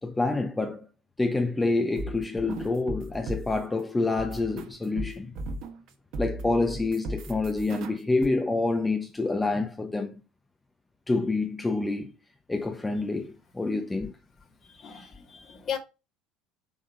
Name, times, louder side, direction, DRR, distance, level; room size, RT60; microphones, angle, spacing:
voice 1, 0.0-0.9 1.2-5.4 6.2-10.2 11.1-12.1 12.5-14.1, left 3 dB, 15° left, 1.0 m, -27 dB
sound 1, 1.7-3.7 4.2-5.9 6.1-8.3, right 2 dB, 55° right, 1.5 m, -37 dB
voice 2, 14.8-15.8, left 8 dB, 40° left, 2.0 m, -36 dB
7.2 x 3.9 x 4.9 m
hypercardioid pair, 70°, 0 cm